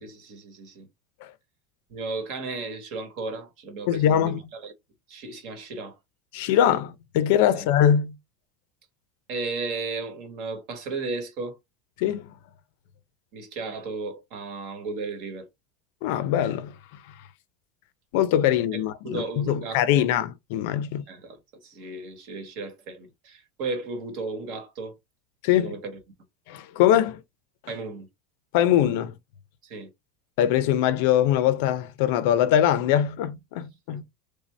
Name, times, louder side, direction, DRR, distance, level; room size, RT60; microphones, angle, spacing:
voice 1, 0.0-0.9 1.9-4.7 5.1-6.0 7.5-7.6 9.3-11.6 13.3-15.5 18.7-20.1 21.1-24.9 25.6-25.9 27.7-28.1 29.6-29.9 33.9-34.0, right 3 dB, 50° right, 1.3 m, -35 dB
voice 2, 3.9-4.4 6.3-8.2 12.0-12.3 16.0-16.7 17.1-17.2 18.1-21.0 25.4-25.7 26.5-27.2 27.6-27.7 28.5-29.2 30.4-34.1, left 10 dB, 60° left, 0.5 m, -22 dB
3.3 x 2.7 x 3.2 m
supercardioid pair, 165°, 0 cm